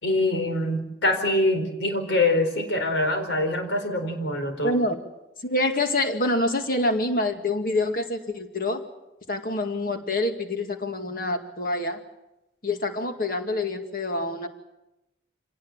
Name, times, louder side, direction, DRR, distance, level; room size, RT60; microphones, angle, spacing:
voice 1, 0.0-4.7, left 2 dB, 85° left, 6 dB, 4.7 m, -24 dB
voice 2, 4.6-5.0 5.4-8.8 9.3-12.0 12.6-14.5, left 2 dB, 50° left, 5 dB, 2.2 m, -26 dB
26.0 x 19.0 x 7.3 m, 0.94 s
head